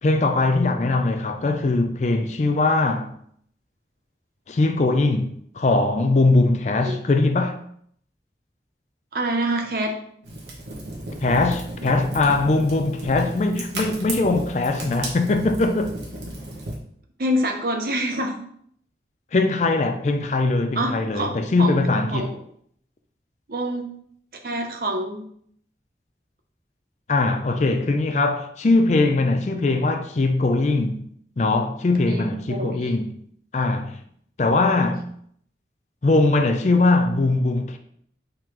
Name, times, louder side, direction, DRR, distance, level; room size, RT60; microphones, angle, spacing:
voice 1, 0.0-3.1 4.5-7.6 11.2-15.9 19.3-22.3 27.1-31.1 31.4-33.2 33.5-34.0 34.4-35.1 36.0-37.8, left 2 dB, 40° left, 0.4 m, -21 dB
voice 2, 9.1-10.0 17.2-18.4 20.7-21.3 21.6-21.8 22.1-22.4 23.5-23.9 24.4-25.3 32.1-32.2 32.5-33.0, right 1 dB, 55° right, 0.7 m, -26 dB
Fire, 10.2-16.7, right 1 dB, 80° right, 1.1 m, -33 dB
4.7 x 3.7 x 3.0 m
head